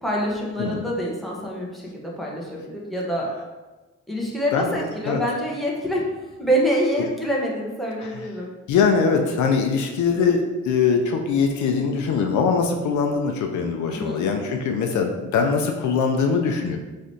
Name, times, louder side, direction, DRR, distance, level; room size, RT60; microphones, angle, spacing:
voice 1, 0.0-3.3 4.1-6.0 6.4-8.5 13.9-14.2, equal, ahead, -4 dB, 1.1 m, -26 dB
voice 2, 8.7-16.8, left 5 dB, 75° left, 4 dB, 0.6 m, -22 dB
4.9 x 3.2 x 2.8 m, 1.2 s
cardioid pair, 90°, 30 cm